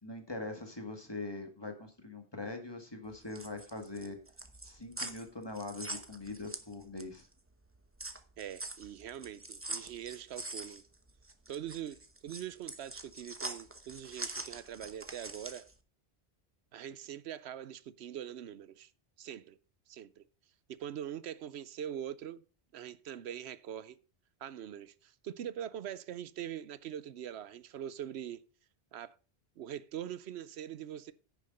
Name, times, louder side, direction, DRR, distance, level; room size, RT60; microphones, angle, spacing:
voice 1, 0.0-4.2 4.6-7.2, left 2 dB, 25° left, 1.8 m, -42 dB
sound 1, 3.1-7.3 7.6-15.7, right 2 dB, 15° right, 0.8 m, -44 dB
voice 2, 8.4-10.8 11.5-15.7 16.7-18.9 19.2-19.6 19.9-20.2 20.7-22.4 22.7-24.0 24.4-28.4 28.9-29.1 29.6-31.1, right 10 dB, 85° right, 0.9 m, -43 dB
10.0 x 6.6 x 5.3 m
omnidirectional pair, 1.1 m